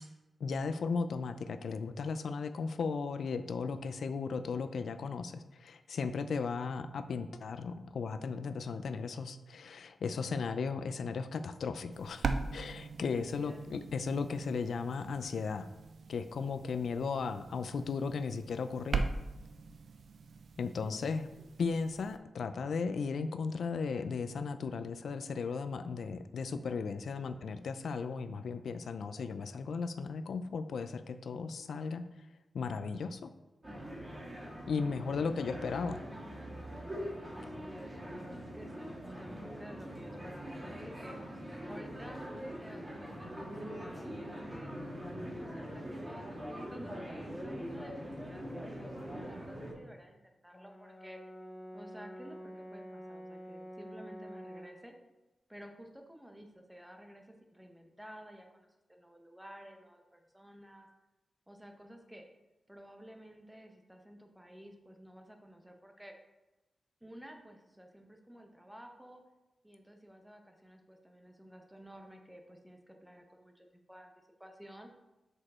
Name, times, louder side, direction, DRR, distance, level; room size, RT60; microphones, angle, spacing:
voice 1, 0.4-15.7 16.1-19.1 20.6-21.3 21.6-32.0 32.5-33.3 34.7-36.0, left 5 dB, 75° left, 10 dB, 0.4 m, -36 dB
sound 1, 11.9-22.2, right 4 dB, 70° right, 0.5 m, -41 dB
voice 2, 13.1-13.7 20.9-21.1 21.4-21.5 34.8-35.9 37.3-41.3 41.7-44.7 45.3-51.2 51.7-55.0 55.5-60.9 61.5-62.3 62.7-66.2 67.0-69.2 69.6-74.1 74.4-74.9, equal, 5° right, 4 dB, 0.9 m, -53 dB
sound 2, 33.6-49.7, equal, 25° right, 2.4 m, -43 dB
Brass instrument, 50.5-54.8, equal, 30° left, 0.7 m, -47 dB
6.4 x 5.0 x 4.3 m, 1.0 s
wide cardioid pair, 95°, 0 cm